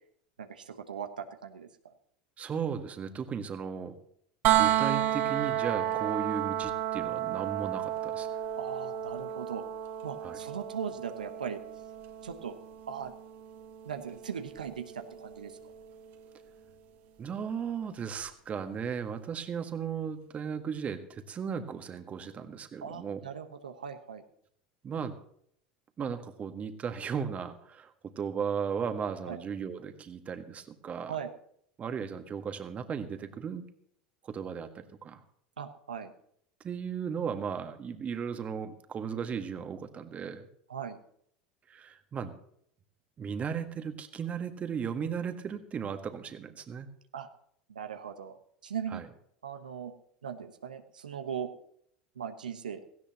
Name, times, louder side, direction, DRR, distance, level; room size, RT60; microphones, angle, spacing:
voice 1, 0.4-1.7 8.6-9.7 10.0-11.6 12.2-12.6 12.9-13.1 13.8-15.6 22.8-24.2 29.3-29.4 31.1-31.3 35.6-36.1 40.7-41.0 47.1-47.3 47.7-49.0 49.4-49.9 50.2-51.5 52.2-52.8, right 7 dB, 85° right, 7 dB, 1.2 m, -39 dB
voice 2, 2.4-4.0 4.6-8.3 10.2-10.4 17.2-23.2 24.8-25.2 26.0-31.2 31.8-33.7 34.2-35.2 36.6-40.5 41.7-42.3 43.2-46.9 48.9-49.1, right 7 dB, 30° right, 7 dB, 1.7 m, -36 dB
sound 1, 4.4-16.3 18.2-18.3, right 11 dB, 50° right, 1.8 m, -32 dB
17.5 x 15.5 x 3.0 m, 0.67 s
hypercardioid pair, 85°, 4 cm